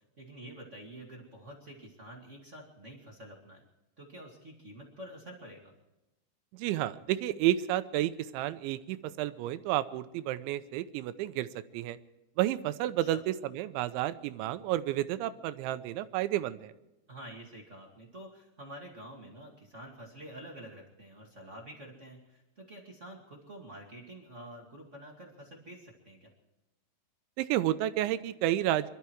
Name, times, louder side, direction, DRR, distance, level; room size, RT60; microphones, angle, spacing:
voice 1, 0.2-3.6 4.0-5.7 13.0-13.2 17.1-26.3, right 1 dB, 35° right, -1 dB, 1.2 m, -48 dB
voice 2, 6.5-11.5 11.7-12.0 12.4-16.7 27.4-28.9, right 13 dB, 90° right, 13 dB, 3.1 m, -31 dB
24.0 x 13.0 x 4.6 m, 0.96 s
omnidirectional pair, 5.3 m